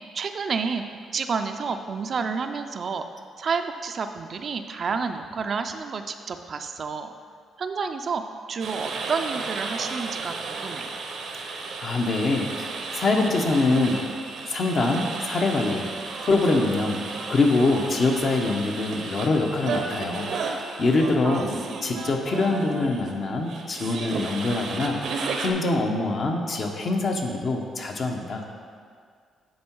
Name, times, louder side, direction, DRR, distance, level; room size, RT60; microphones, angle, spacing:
voice 1, 0.1-0.8 1.1-3.1 3.4-7.1 7.6-8.2 8.5-10.9 21.2-21.8, right 5 dB, 50° right, 7 dB, 0.4 m, -30 dB
sound 1, 8.6-25.5, right 4 dB, 70° right, 0.7 m, -34 dB
voice 2, 11.4-14.0 14.5-15.8 16.2-17.0 17.3-20.3 20.8-21.5 21.8-25.0 25.4-28.4, left 3 dB, 50° left, 2 dB, 0.9 m, -24 dB
9.4 x 3.9 x 4.5 m, 2.1 s
cardioid pair, 90°, 0 cm